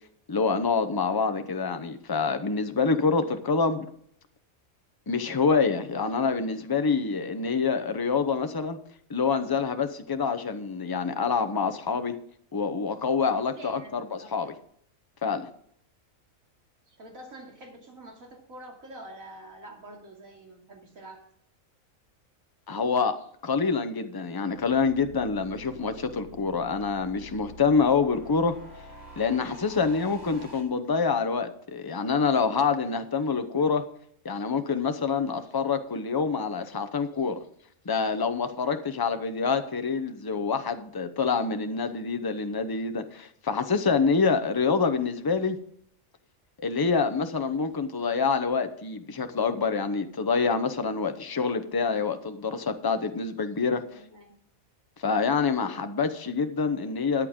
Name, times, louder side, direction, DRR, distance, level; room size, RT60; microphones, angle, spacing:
voice 1, 0.3-3.9 5.1-8.8 9.1-12.1 12.5-14.5 15.2-15.5 22.7-28.6 29.2-33.9 34.2-37.4 37.8-45.6 46.6-54.0 55.0-57.3, left 5 dB, 20° left, 8 dB, 0.7 m, -26 dB
voice 2, 13.4-14.3 16.9-21.2 53.7-54.4, right 1 dB, 75° right, 0 dB, 3.1 m, -47 dB
Sci-fi Explosion Build-Up, 24.5-30.6, right 2 dB, 55° right, 4.7 m, -47 dB
13.5 x 9.7 x 3.7 m, 0.66 s
omnidirectional pair, 1.4 m